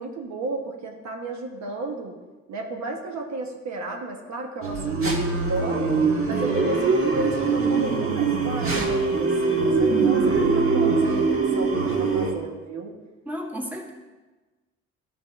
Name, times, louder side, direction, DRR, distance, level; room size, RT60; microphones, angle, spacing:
voice 1, 0.0-2.2 2.5-6.0 6.3-12.9, right 2 dB, 65° right, 2 dB, 1.4 m, -33 dB
sound 1, 4.6-12.3, right 4 dB, 45° right, 1.8 m, -22 dB
voice 2, 6.3-6.8 9.9-10.2 13.2-13.9, equal, 5° right, -1 dB, 1.5 m, -33 dB
12.5 x 4.2 x 5.4 m, 1.2 s
cardioid pair, 90°, 30 cm